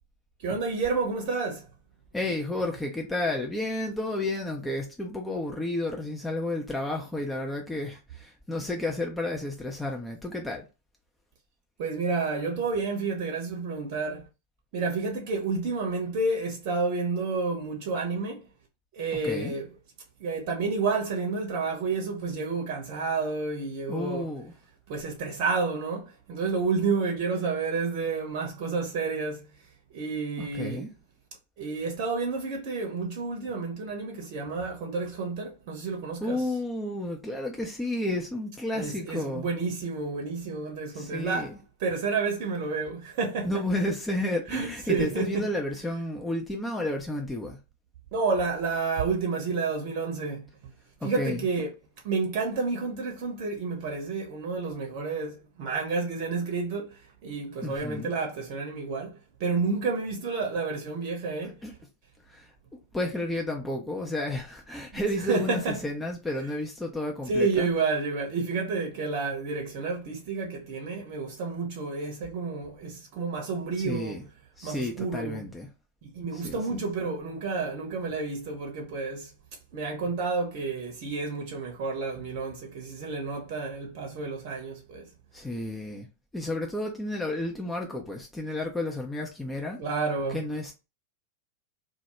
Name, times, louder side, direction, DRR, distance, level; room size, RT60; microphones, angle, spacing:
voice 1, 0.4-1.6 11.8-14.3 14.7-18.5 18.9-19.7 20.2-24.2 24.9-29.5 29.9-30.9 31.6-36.4 38.7-41.5 41.8-43.5 44.5-45.5 48.1-50.7 51.0-51.7 52.0-61.6 65.3-65.8 67.3-74.2 74.6-75.4 76.0-79.3 79.7-85.1 89.8-90.4, right 4 dB, 45° right, 0.7 m, -30 dB
voice 2, 2.1-10.6 19.2-19.5 23.9-24.5 30.4-30.9 36.2-39.5 40.9-41.6 43.4-47.6 51.0-51.5 57.6-58.1 61.4-61.7 62.3-67.7 73.8-74.2 74.6-75.7 76.3-76.8 85.3-86.1 86.3-89.8 90.3-90.7, left 1 dB, 10° left, 0.4 m, -32 dB
2.2 x 2.0 x 3.0 m
figure-of-eight pair, 90°, 0 cm